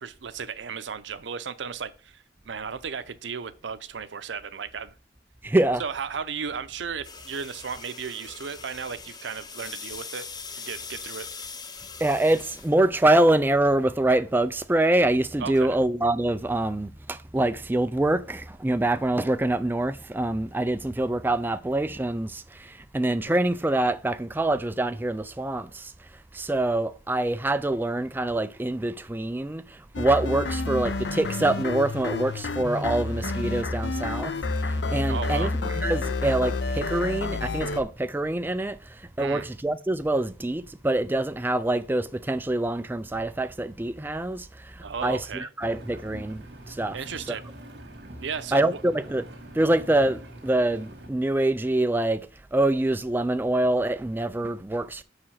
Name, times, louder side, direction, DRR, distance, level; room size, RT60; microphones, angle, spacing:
voice 1, 0.0-4.9 5.8-10.3 10.5-11.3 15.4-15.8 35.1-35.5 39.2-39.5 44.8-45.5 46.9-47.5 48.2-48.8, right 6 dB, 85° right, 0.6 m, -35 dB
voice 2, 5.4-5.8 12.0-47.0 47.3-47.4 48.5-49.2 49.5-55.0, right 1 dB, 10° right, 0.4 m, -25 dB
sound 1, 7.0-12.7, left 5 dB, 25° left, 0.7 m, -41 dB
sound 2, 29.9-37.8, left 3 dB, 70° left, 0.7 m, -29 dB
Engine, 45.6-51.1, right 1 dB, 65° right, 1.8 m, -44 dB
6.1 x 4.9 x 5.7 m
head